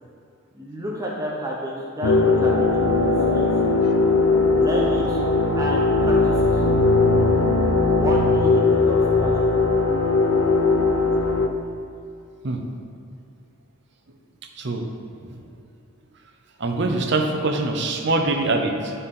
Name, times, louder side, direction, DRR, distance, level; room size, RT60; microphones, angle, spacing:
voice 1, 0.5-3.5 4.4-5.2 5.6-6.6 7.9-9.7, equal, 15° right, -4 dB, 0.7 m, -30 dB
sound 1, 2.0-11.5, left 3 dB, 80° left, 0.5 m, -19 dB
voice 2, 14.6-14.9 15.2-15.4 16.6-18.9, right 2 dB, 55° right, 3 dB, 0.7 m, -23 dB
9.7 x 4.1 x 3.7 m, 2.6 s
head